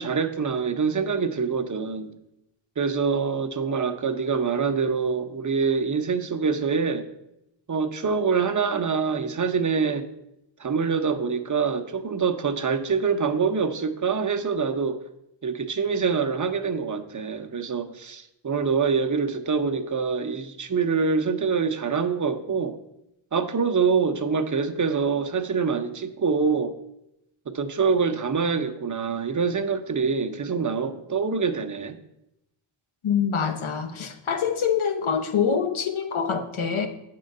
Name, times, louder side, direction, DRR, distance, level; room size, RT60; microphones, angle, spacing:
voice 1, 0.0-2.1 2.8-7.0 7.7-10.1 10.6-15.0 15.4-22.8 23.3-26.7 27.5-32.0, right 5 dB, 40° right, 7 dB, 0.7 m, -25 dB
voice 2, 33.0-36.9, left 7 dB, 80° left, 7 dB, 1.0 m, -25 dB
9.0 x 3.8 x 6.5 m, 0.86 s
wide cardioid pair, 100°, 48 cm